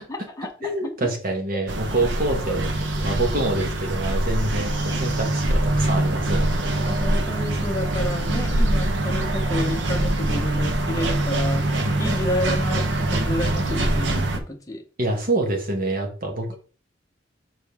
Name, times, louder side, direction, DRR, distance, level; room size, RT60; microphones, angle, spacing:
voice 1, 0.1-0.9 2.5-2.7 6.7-14.8 16.5-16.6, left 1 dB, 20° left, 2 dB, 0.8 m, -30 dB
voice 2, 0.6-2.7 3.0-6.7 8.4-8.6 11.8-12.3 15.0-16.6, right 2 dB, 50° right, 2 dB, 1.6 m, -26 dB
sound 1, 1.7-14.4, right 1 dB, 80° right, 1.0 m, -23 dB
6.6 x 4.3 x 3.5 m, 0.40 s
head